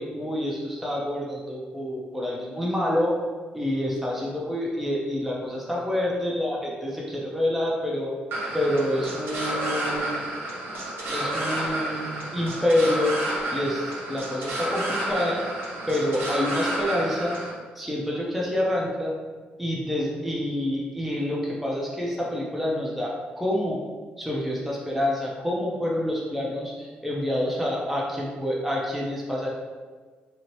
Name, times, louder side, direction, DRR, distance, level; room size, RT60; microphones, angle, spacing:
voice 1, 0.0-3.1 3.5-8.1 8.5-10.2 11.1-13.2 13.5-15.4 15.9-17.4 17.8-19.1 19.6-23.8 24.2-29.5, left 1 dB, 5° right, -4 dB, 0.7 m, -27 dB
sound 1, 8.3-17.5, right 1 dB, 75° right, 0.7 m, -30 dB
2.8 x 2.4 x 3.1 m, 1.5 s
supercardioid pair, 60°, 4 cm